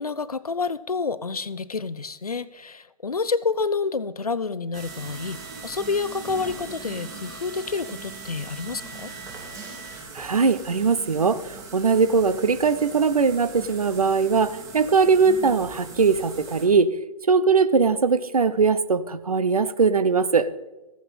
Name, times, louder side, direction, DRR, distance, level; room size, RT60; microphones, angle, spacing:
voice 1, 0.0-9.1, left 4 dB, 85° left, 18 dB, 0.6 m, -29 dB
sound 1, 4.7-16.7, right 4 dB, 15° right, 2.2 m, -40 dB
voice 2, 10.1-16.9 17.3-20.5, right 5 dB, 80° right, 15 dB, 0.7 m, -20 dB
14.5 x 9.3 x 4.2 m, 1.1 s
figure-of-eight pair, 125°, 19 cm